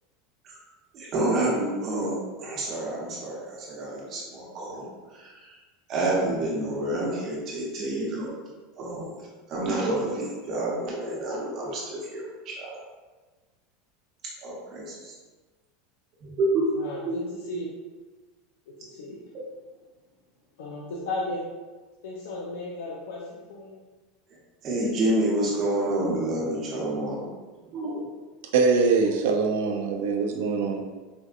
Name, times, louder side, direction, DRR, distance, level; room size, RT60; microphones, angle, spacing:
voice 1, 0.9-5.6 5.9-8.4 8.8-9.1 9.5-12.8 14.4-15.1 16.2-16.7 17.0-17.2 24.6-27.2 27.7-28.0 29.2-29.3 29.6-29.7, right 1 dB, 30° right, -4 dB, 0.9 m, -28 dB
voice 2, 16.8-17.7 18.7-19.2 20.6-21.4 22.0-23.8, left 2 dB, 90° left, -4 dB, 0.6 m, -35 dB
voice 3, 28.5-30.8, right 4 dB, 75° right, 3 dB, 0.5 m, -23 dB
4.3 x 2.7 x 2.4 m, 1.3 s
supercardioid pair, 180°, 0 cm